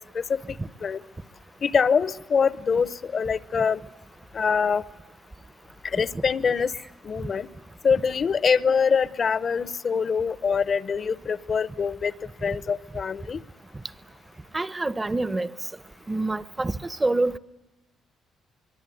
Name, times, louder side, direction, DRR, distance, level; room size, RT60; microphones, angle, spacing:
voice 1, 0.1-1.0 1.6-3.8 4.3-4.8 5.8-6.7 7.0-7.5 7.8-12.1 12.4-13.4, left 6 dB, 45° left, 0.8 m, -24 dB
voice 2, 14.5-15.5 16.1-17.4, right 2 dB, 20° right, 0.8 m, -26 dB
24.0 x 23.0 x 9.2 m
cardioid pair, 90°, 0 cm